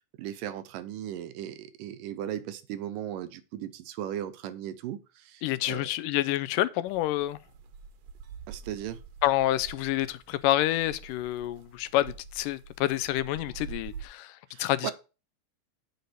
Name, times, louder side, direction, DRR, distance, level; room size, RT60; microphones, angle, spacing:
voice 1, 0.2-5.4 5.7-5.9 8.5-9.0 14.5-14.9, right 11 dB, 85° right, 2.4 m, -37 dB
voice 2, 5.4-7.4 9.2-14.9, left 15 dB, 80° left, 2.1 m, -28 dB
sound 1, 6.9-14.1, right 6 dB, 70° right, 1.9 m, -46 dB
7.9 x 4.1 x 6.6 m
omnidirectional pair, 3.8 m